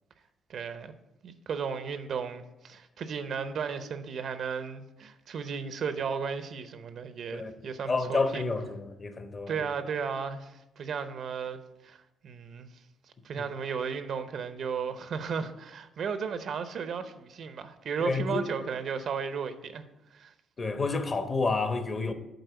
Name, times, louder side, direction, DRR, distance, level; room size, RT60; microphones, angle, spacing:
voice 1, 0.5-0.9 1.2-8.4 9.5-12.7 13.2-19.8 20.1-20.3, right 6 dB, 65° right, 0.7 m, -35 dB
voice 2, 7.9-9.5 18.0-18.4 20.6-22.1, left 3 dB, 35° left, 0.9 m, -29 dB
7.9 x 4.4 x 6.9 m
cardioid pair, 90°, 0 cm